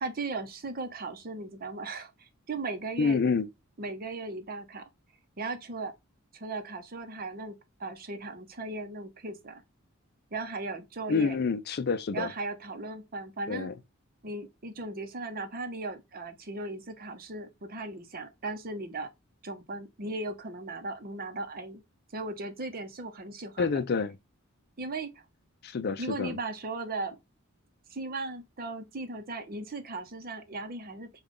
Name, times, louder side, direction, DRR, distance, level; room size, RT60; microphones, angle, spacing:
voice 1, 0.0-3.2 3.8-4.8 5.4-5.9 6.3-9.6 10.3-11.4 12.1-13.7 14.2-19.1 19.4-21.8 22.1-23.8 24.8-25.2 26.0-27.2 27.9-31.1, right 3 dB, 45° right, 0.7 m, -37 dB
voice 2, 3.0-3.5 11.1-12.3 13.5-13.7 23.6-24.2 25.6-26.4, left 5 dB, 50° left, 0.4 m, -28 dB
5.0 x 2.3 x 3.6 m
head